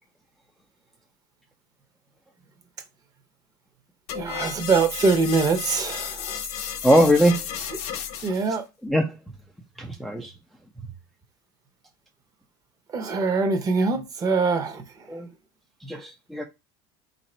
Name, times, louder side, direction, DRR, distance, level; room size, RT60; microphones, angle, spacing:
sound 1, 4.1-8.5, left 8 dB, 55° left, 0.9 m, -33 dB
voice 1, 4.1-6.4 8.2-8.7 12.9-15.2, right 4 dB, 30° right, 0.8 m, -23 dB
voice 2, 6.8-7.5 8.8-9.1 9.8-10.3 15.1-15.3 15.8-16.4, equal, ahead, 0.4 m, -21 dB
3.9 x 2.6 x 4.3 m
cardioid pair, 145°, 13 cm